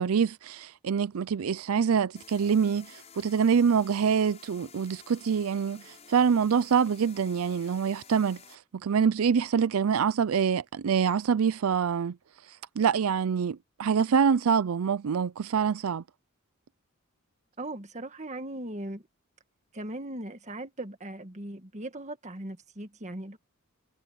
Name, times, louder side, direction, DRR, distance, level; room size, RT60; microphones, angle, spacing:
voice 1, 0.0-12.2 12.5-16.0, right 6 dB, 90° right, 0.5 m, -25 dB
sound 1, 2.2-8.6, left 6 dB, 30° left, 6.1 m, -52 dB
voice 2, 17.6-19.0 19.7-23.4, right 1 dB, 35° right, 1.8 m, -38 dB
head